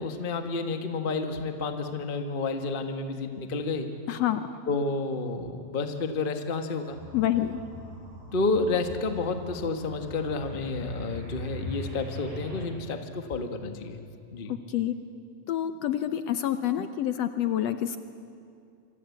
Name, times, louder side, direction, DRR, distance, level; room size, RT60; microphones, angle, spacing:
voice 1, 0.0-3.9 4.7-7.0 8.3-14.0 14.3-14.6, left 3 dB, 30° left, 6 dB, 1.0 m, -30 dB
voice 2, 4.1-4.5 7.1-7.6 14.5-14.9 15.5-18.0, left 11 dB, 70° left, 10 dB, 1.8 m, -27 dB
sound 1, 6.9-12.6, left 1 dB, 85° right, 9.7 m, -41 dB
27.0 x 25.5 x 8.5 m, 2.4 s
omnidirectional pair, 3.4 m